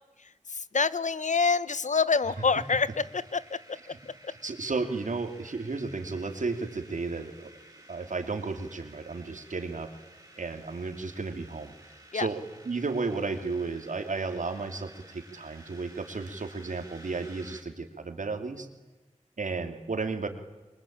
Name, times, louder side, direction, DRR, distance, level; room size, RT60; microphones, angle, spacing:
voice 1, 0.7-3.8 4.2-4.3 12.1-12.3, left 4 dB, 75° left, 18 dB, 1.0 m, -26 dB
sound 1, 2.3-17.6, right 1 dB, 25° right, 7.4 m, -54 dB
voice 2, 4.3-7.5 7.9-9.9 10.4-11.7 12.1-18.7 19.4-20.3, right 4 dB, 85° right, 7 dB, 2.8 m, -33 dB
28.5 x 23.5 x 8.8 m, 1.2 s
cardioid pair, 45°, 13 cm